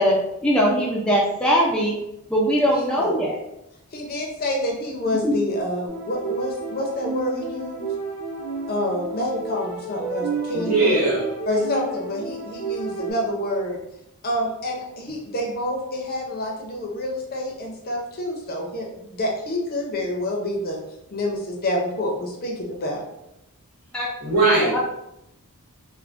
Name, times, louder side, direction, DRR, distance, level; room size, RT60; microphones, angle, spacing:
voice 1, 0.0-2.0 2.3-3.4 5.2-5.3 23.9-24.1 24.7-24.8, equal, 5° left, -5 dB, 0.3 m, -21 dB
voice 2, 2.7-3.1 3.9-7.9 8.7-11.0 11.5-13.8 14.2-20.8 21.1-23.0, left 1 dB, 45° left, 0 dB, 0.6 m, -27 dB
sound 1, 5.9-13.1, right 4 dB, 15° right, 0.9 m, -31 dB
voice 3, 10.5-11.3 24.2-24.8, right 2 dB, 90° right, -10 dB, 1.4 m, -20 dB
3.3 x 2.1 x 2.4 m, 0.85 s
head